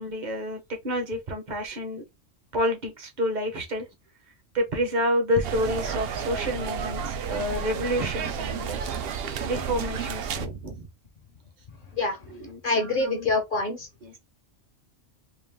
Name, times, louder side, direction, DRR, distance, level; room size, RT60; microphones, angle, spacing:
voice 1, 0.0-2.0 2.5-3.9 4.5-8.8 9.4-10.9 12.3-13.3 14.0-14.2, equal, 40° right, 1.0 m, -29 dB
sound 1, 5.4-10.5, right 7 dB, 60° right, 0.7 m, -31 dB
voice 2, 12.6-13.9, left 3 dB, 50° left, 0.8 m, -25 dB
3.7 x 2.5 x 3.4 m
omnidirectional pair, 1.2 m